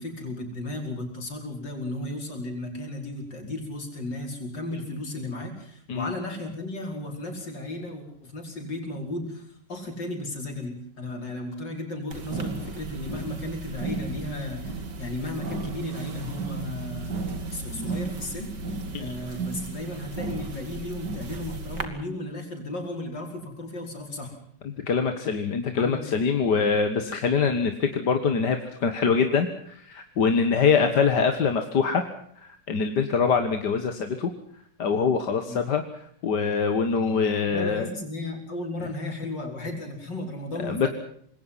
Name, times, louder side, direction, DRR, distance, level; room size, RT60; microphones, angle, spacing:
voice 1, 0.0-17.3 17.5-18.6 19.0-24.3 25.8-26.2 35.5-35.7 37.5-40.9, left 2 dB, 85° left, 2 dB, 5.7 m, -35 dB
sound 1, 12.1-21.8, right 3 dB, 75° right, 2.9 m, -34 dB
voice 2, 24.7-32.0 32.4-34.3 34.8-35.8 36.2-37.9 40.6-40.9, left 5 dB, 70° left, 7 dB, 2.1 m, -24 dB
26.0 x 21.5 x 5.7 m, 0.64 s
omnidirectional pair, 1.9 m